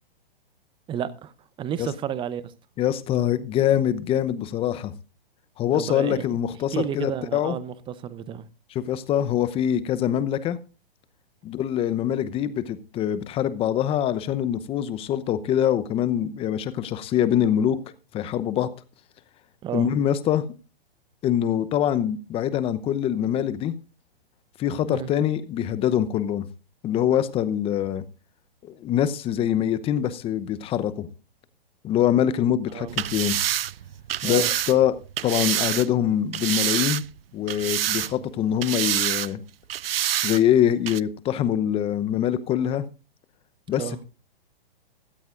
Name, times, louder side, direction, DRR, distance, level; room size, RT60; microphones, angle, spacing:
voice 1, 0.9-1.3 1.6-2.5 5.7-6.3 6.7-8.5 19.6-19.9 24.9-25.1 32.7-33.0 34.2-34.5 43.8-44.0, right 9 dB, 15° right, 0.8 m, -31 dB
voice 2, 2.8-4.9 5.6-7.6 8.7-10.6 11.4-17.8 18.1-18.7 19.7-20.4 21.2-23.7 24.6-26.5 26.8-28.0 28.6-31.1 31.8-33.4 34.2-35.0 35.2-37.0 37.3-39.4 40.2-42.8 43.7-44.0, left 10 dB, 20° left, 0.8 m, -24 dB
sound 1, 32.9-35.9 36.3-37.2 37.5-38.3 38.6-39.3 39.7-40.4 40.9-41.0, right 11 dB, 75° right, 0.5 m, -26 dB
16.5 x 13.5 x 2.5 m
hypercardioid pair, 130°, 30 cm